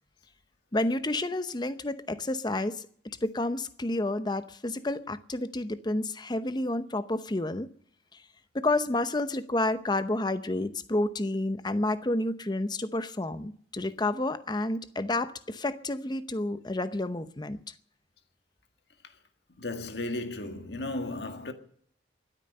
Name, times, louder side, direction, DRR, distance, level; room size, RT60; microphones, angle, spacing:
voice 1, 0.7-2.9 3.2-7.7 8.5-17.6, left 2 dB, 25° left, 0.8 m, -30 dB
voice 2, 19.6-21.5, left 2 dB, 70° left, 1.8 m, -34 dB
23.5 x 9.2 x 6.7 m
head